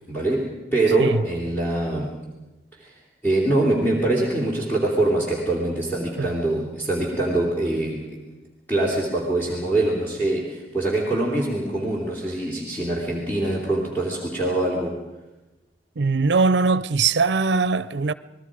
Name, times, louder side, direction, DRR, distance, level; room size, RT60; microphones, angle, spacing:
voice 1, 0.1-2.2 2.7-2.9 3.2-8.2 8.7-15.0, right 2 dB, 10° left, 3.2 m, -24 dB
voice 2, 16.0-18.1, right 4 dB, 80° right, 0.6 m, -21 dB
28.5 x 20.0 x 5.1 m
head